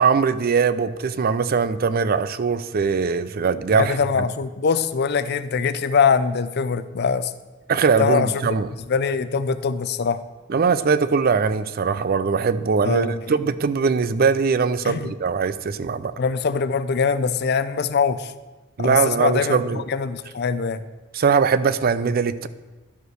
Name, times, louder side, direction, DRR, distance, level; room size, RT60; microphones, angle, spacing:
voice 1, 0.0-4.0 7.7-8.7 10.5-16.1 18.8-19.8 21.1-22.5, right 5 dB, 50° right, 14 dB, 0.4 m, -21 dB
voice 2, 3.7-7.3 8.0-8.3 8.9-10.2 12.8-13.2 14.8-15.1 16.2-18.3 18.8-20.8, left 5 dB, 55° left, 14 dB, 0.5 m, -22 dB
11.5 x 5.3 x 6.3 m, 1.2 s
head